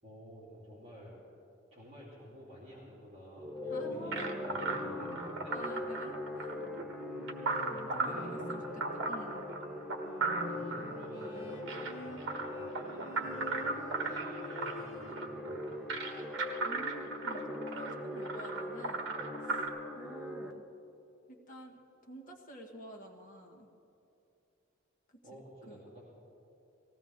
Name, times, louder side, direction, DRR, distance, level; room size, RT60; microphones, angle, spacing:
voice 1, 0.0-1.1 1.7-4.2 4.4-5.6 7.4-8.4 10.5-15.8 25.2-26.0, equal, 30° right, -8 dB, 3.0 m, -52 dB
sound 1, 3.4-20.5, left 1 dB, 5° right, 0.7 m, -42 dB
Bowed string instrument, 3.7-15.4 15.7-16.6, left 1 dB, 70° left, 1.5 m, -49 dB
voice 2, 3.7-4.4 5.5-6.6 7.7-9.5 16.6-19.1 19.4-19.6 19.9-20.6 21.3-23.7 25.3-25.8, right 1 dB, 40° left, 0 dB, 1.4 m, -49 dB
sound 2, 4.1-19.7, right 3 dB, 60° right, 1.4 m, -37 dB
19.0 x 15.5 x 3.6 m, 2.7 s
head